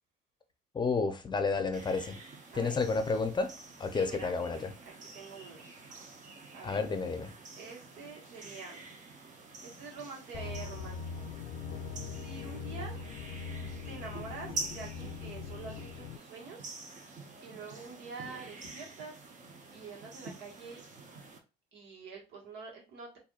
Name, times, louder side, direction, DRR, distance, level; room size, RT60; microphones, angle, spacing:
voice 1, 0.7-2.2 2.5-3.5 3.8-4.7 6.6-7.3, left 4 dB, 25° left, 0.6 m, -31 dB
sound 1, 1.7-21.4, right 3 dB, 45° right, 0.8 m, -47 dB
voice 2, 3.9-4.4 5.0-5.7 6.5-6.8 7.5-8.8 9.6-11.3 12.1-13.1 13.9-16.7 17.4-19.2 19.7-20.8 21.7-23.2, right 4 dB, 85° right, 1.5 m, -46 dB
sound 2, 10.3-16.2, left 5 dB, 75° left, 0.4 m, -41 dB
4.2 x 2.7 x 2.4 m
cardioid pair, 110°, 17 cm